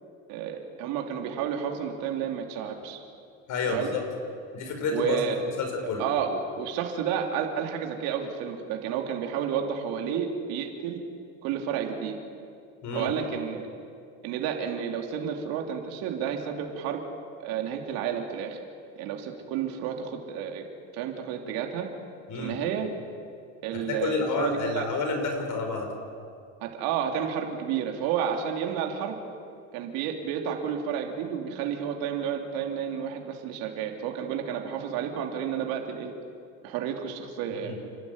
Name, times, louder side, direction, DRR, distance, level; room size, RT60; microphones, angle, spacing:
voice 1, 0.3-3.0 3.7-3.9 4.9-5.4 6.0-11.0 11.4-12.2 12.9-13.6 14.2-17.0 17.4-18.6 19.0-20.7 20.9-21.9 22.3-22.9 23.6-24.9 26.6-29.2 29.7-36.1 36.6-37.7, right 8 dB, 75° right, 2 dB, 3.2 m, -31 dB
voice 2, 3.5-4.0 4.5-5.2 5.6-6.0 12.8-13.1 22.3-22.5 23.8-25.9 37.6-37.8, left 4 dB, 55° left, 4 dB, 5.7 m, -29 dB
29.0 x 12.5 x 9.7 m, 2.3 s
supercardioid pair, 110°, 36 cm